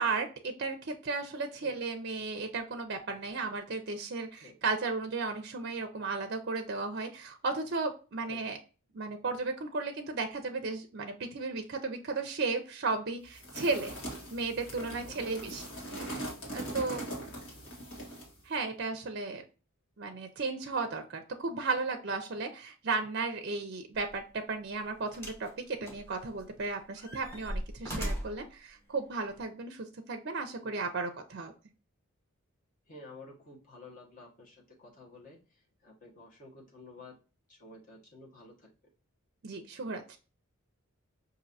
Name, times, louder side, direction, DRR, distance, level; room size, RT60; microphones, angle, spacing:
voice 1, 0.0-8.6 8.9-14.0 14.3-15.6 15.9-16.3 16.5-17.0 18.4-19.4 20.0-31.5 39.4-40.2, right 3 dB, 50° right, 6 dB, 0.5 m, -34 dB
sound 1, 13.3-18.4, right 1 dB, 65° left, 1.6 m, -41 dB
voice 2, 15.0-15.4 16.7-17.7 30.6-30.8 32.9-37.1 37.5-38.7, left 2 dB, 35° left, -3 dB, 1.3 m, -52 dB
sound 2, 23.9-24.1 25.1-25.5 25.9-26.6 27.0-28.5 29.3-29.4, equal, 10° left, 0.9 m, -38 dB
5.2 x 2.6 x 2.6 m, 0.34 s
head